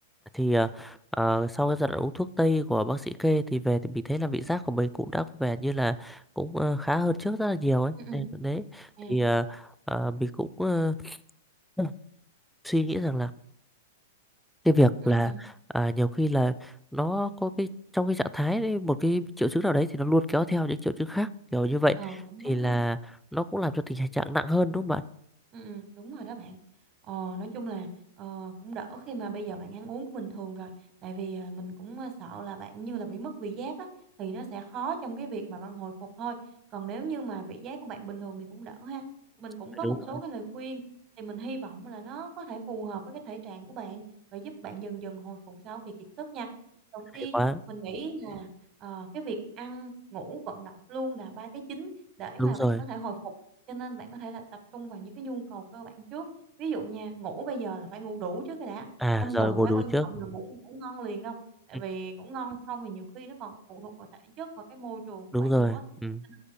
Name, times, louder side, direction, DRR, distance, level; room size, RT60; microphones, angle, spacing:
voice 1, 0.3-11.2 11.8-11.9 12.6-13.3 14.6-15.3 15.7-17.7 17.9-22.0 22.4-23.0 23.3-25.0 39.8-40.0 47.3-47.6 52.4-52.8 59.0-60.1 65.3-66.2, equal, ahead, 15 dB, 0.3 m, -27 dB
voice 2, 15.0-15.4 22.0-22.8 25.5-26.6 27.1-27.9 28.2-30.7 31.0-33.9 34.2-36.4 36.7-39.0 39.4-40.8 41.2-44.0 44.3-45.9 46.3-46.5 46.9-47.4 47.7-48.5 48.8-51.9 52.2-53.3 53.7-54.4 54.7-56.3 56.6-58.9 59.2-61.4 61.7-65.8 66.3-66.4, right 4 dB, 35° right, 6 dB, 1.4 m, -38 dB
12.5 x 5.0 x 2.2 m, 0.71 s
hypercardioid pair, 110°, 0 cm